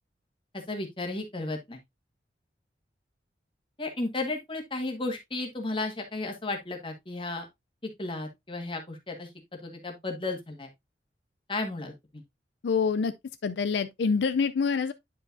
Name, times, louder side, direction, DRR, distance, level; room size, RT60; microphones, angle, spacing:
voice 1, 0.5-1.8 3.8-7.5 8.0-9.3 9.6-10.7 11.5-12.2, left 2 dB, 30° left, 1.6 m, -34 dB
voice 2, 12.6-13.1 13.4-14.9, left 5 dB, 70° left, 0.4 m, -26 dB
10.0 x 4.8 x 2.6 m
head